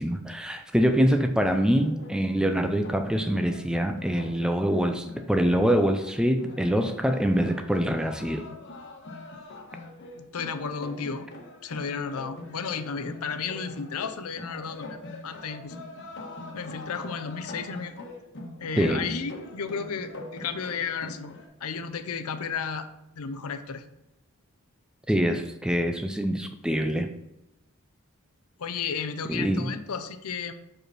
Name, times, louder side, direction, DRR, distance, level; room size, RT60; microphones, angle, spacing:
voice 1, 0.0-8.5 18.8-19.1 25.1-27.1 29.3-29.7, equal, 5° right, 7 dB, 0.4 m, -24 dB
sound 1, 1.8-21.5, left 2 dB, 55° left, 1.2 m, -43 dB
voice 2, 10.1-11.3 11.6-15.8 16.5-18.1 18.6-21.3 21.6-22.9 23.1-23.8 28.6-30.6, left 6 dB, 75° left, 10 dB, 0.6 m, -33 dB
4.9 x 4.9 x 6.0 m, 0.90 s
head